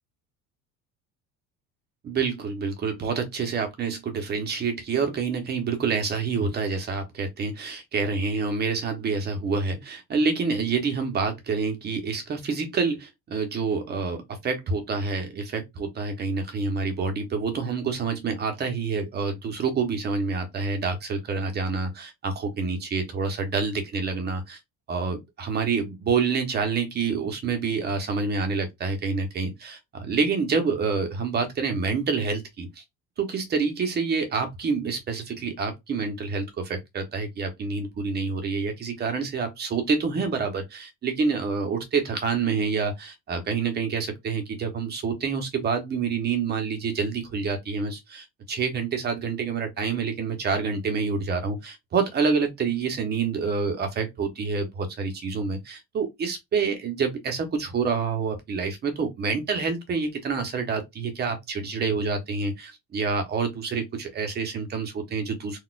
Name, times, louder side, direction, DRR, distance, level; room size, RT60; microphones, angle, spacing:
voice 1, 2.0-24.6 24.9-32.8 33.2-65.6, right 5 dB, 30° right, 0.8 m, -27 dB
4.0 x 2.4 x 2.4 m
cardioid pair, 160°, 33 cm